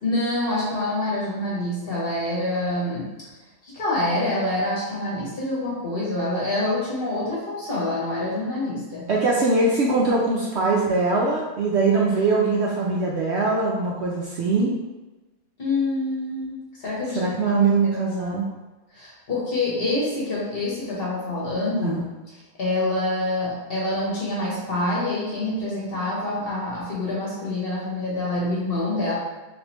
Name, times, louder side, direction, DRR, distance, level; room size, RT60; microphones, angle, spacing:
voice 1, 0.0-3.1 3.6-9.1 15.6-17.6 17.8-18.4 19.0-22.0 22.6-29.1, left 2 dB, 45° left, -6 dB, 1.2 m, -26 dB
voice 2, 9.1-14.7 17.2-18.4 21.8-22.0, right 3 dB, 65° right, -4 dB, 0.7 m, -22 dB
3.5 x 3.3 x 3.0 m, 1.1 s
omnidirectional pair, 1.5 m